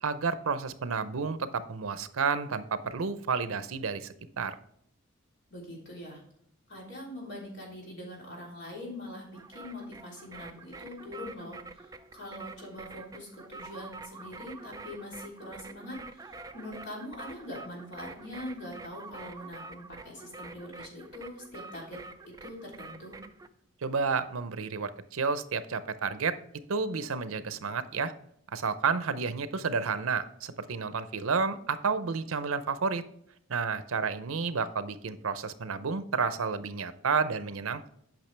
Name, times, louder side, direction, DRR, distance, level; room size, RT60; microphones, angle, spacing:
voice 1, 0.0-4.5 23.8-26.4 26.7-28.1 28.5-33.0 33.5-37.9, right 5 dB, 85° right, 13 dB, 0.6 m, -31 dB
voice 2, 5.5-6.2 6.7-22.0 22.2-23.2, left 1 dB, 60° left, -3 dB, 3.3 m, -43 dB
sound 1, 9.3-23.5, right 3 dB, 15° right, 0.4 m, -47 dB
8.8 x 5.9 x 3.3 m, 0.71 s
head